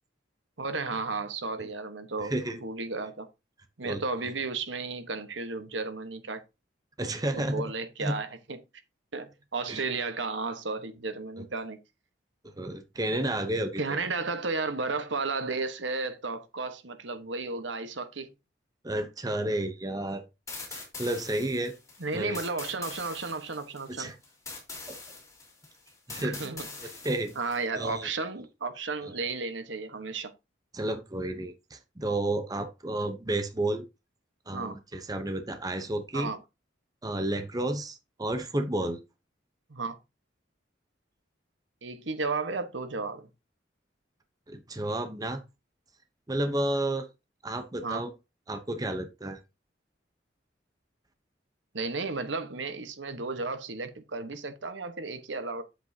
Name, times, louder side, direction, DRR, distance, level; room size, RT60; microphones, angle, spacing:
voice 1, 0.6-3.3 3.8-6.4 7.4-8.6 9.1-11.8 13.8-18.3 22.0-24.1 26.2-26.9 27.4-30.3 34.5-34.8 36.1-36.4 39.7-40.0 41.8-43.3 47.8-48.0 51.7-55.6, right 3 dB, 75° right, 1.3 m, -33 dB
voice 2, 2.2-2.6 3.8-4.0 7.0-7.7 8.0-8.2 9.7-9.8 12.6-14.0 18.8-20.2 20.7-21.7 22.1-22.4 23.9-24.1 24.9-25.0 26.1-26.5 26.8-27.3 27.8-28.1 30.7-33.9 34.5-36.3 37.0-39.0 44.5-45.4 46.3-47.1 47.4-48.1 48.5-49.4, right 1 dB, 20° right, 0.9 m, -31 dB
sound 1, 20.5-27.6, left 3 dB, 15° left, 4.0 m, -43 dB
8.7 x 7.9 x 2.8 m
head